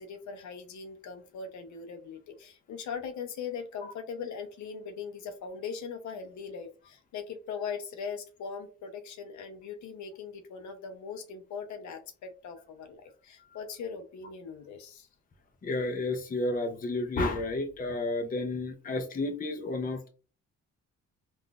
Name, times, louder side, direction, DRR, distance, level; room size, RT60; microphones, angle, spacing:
voice 1, 0.0-15.1, left 6 dB, 70° left, 7 dB, 0.7 m, -40 dB
voice 2, 15.6-20.1, left 2 dB, 30° left, 5 dB, 0.6 m, -31 dB
3.8 x 2.5 x 2.4 m, 0.36 s
cardioid pair, 90°, 30 cm